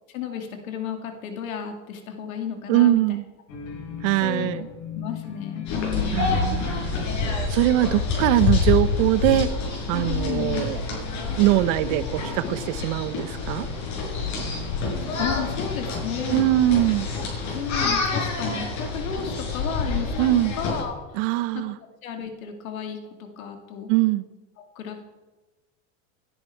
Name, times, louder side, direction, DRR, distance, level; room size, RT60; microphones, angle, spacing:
voice 1, 0.1-3.0 4.2-4.6 4.9-6.4 10.0-10.6 15.2-16.4 17.5-20.3 20.6-21.2 21.5-21.6 22.0-23.9 24.6-25.0, left 8 dB, 90° left, 5 dB, 2.5 m, -33 dB
voice 2, 2.7-3.2 4.0-4.7 6.1-9.5 9.9-10.8 11.4-13.7 16.3-17.1 20.2-20.5 21.1-21.8 23.9-24.2, right 15 dB, 65° right, 16 dB, 1.0 m, -22 dB
sound 1, 3.5-17.0, left 7 dB, 75° left, 4.1 m, -40 dB
sound 2, 5.7-20.8, left 4 dB, 45° left, 5.8 m, -27 dB
17.5 x 10.5 x 4.6 m, 1.2 s
supercardioid pair, 120°, 40 cm